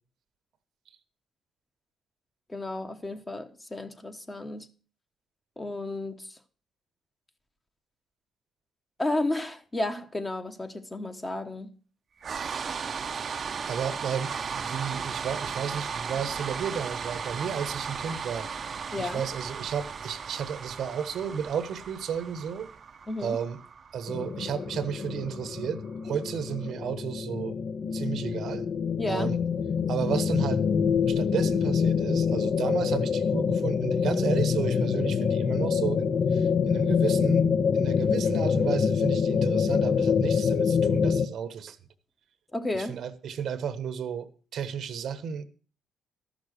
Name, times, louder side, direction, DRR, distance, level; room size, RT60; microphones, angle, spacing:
voice 1, 2.5-4.7 5.6-6.4 9.0-11.7 18.9-19.2 23.1-23.4 29.0-29.3 42.5-43.0, left 2 dB, 20° left, 1.1 m, -32 dB
sound 1, 12.2-26.3, right 6 dB, 45° right, 0.7 m, -36 dB
voice 2, 13.1-18.5 19.0-22.7 23.2-23.6 23.9-27.6 27.9-28.7 29.1-29.4 29.9-30.6 31.1-37.5 37.7-41.8 42.7-45.4, right 7 dB, 70° right, 1.0 m, -33 dB
sound 2, 24.1-41.3, left 6 dB, 55° left, 0.8 m, -26 dB
13.0 x 6.2 x 6.5 m
cardioid pair, 90°, 0 cm